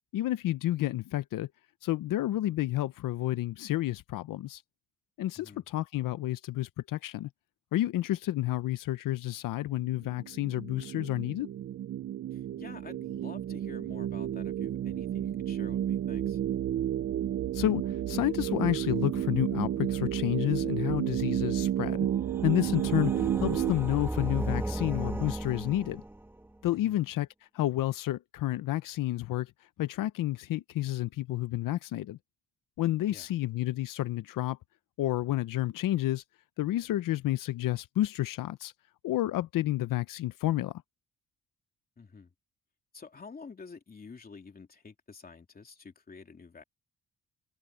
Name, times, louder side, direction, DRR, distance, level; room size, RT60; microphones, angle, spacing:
voice 1, 0.1-1.5 1.8-4.6 5.2-7.3 7.7-11.5 17.5-22.1 22.4-26.0 26.6-27.3 27.5-29.5 29.8-32.2 32.8-34.6 35.0-36.2 36.6-38.7 39.0-40.8, left 15 dB, 85° left, 0.7 m, -30 dB
voice 2, 5.3-5.7 12.3-16.4 26.7-27.0 33.1-33.3 42.0-42.3 42.9-46.6, left 5 dB, 30° left, 3.1 m, -49 dB
sound 1, 9.9-23.7, right 11 dB, 45° right, 0.4 m, -31 dB
sound 2, 21.8-26.5, right 1 dB, 5° right, 1.1 m, -35 dB
cardioid pair, 145°, 32 cm